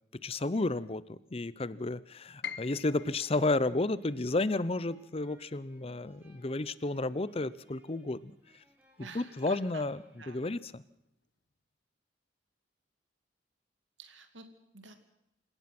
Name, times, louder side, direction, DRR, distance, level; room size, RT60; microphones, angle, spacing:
voice 1, 0.1-8.3 9.0-10.8, left 2 dB, 30° left, 18 dB, 0.7 m, -32 dB
Piano, 2.4-8.4 8.7-9.8 10.3-10.4 11.1-11.4, left 8 dB, 60° left, 1.0 m, -48 dB
sound 1, 2.8-10.9, right 1 dB, 10° right, 4.0 m, -66 dB
voice 2, 9.0-9.9 10.2-10.5 14.0-14.5 14.7-15.0, right 4 dB, 85° right, 7 dB, 2.4 m, -50 dB
28.0 x 17.0 x 6.0 m, 0.80 s
head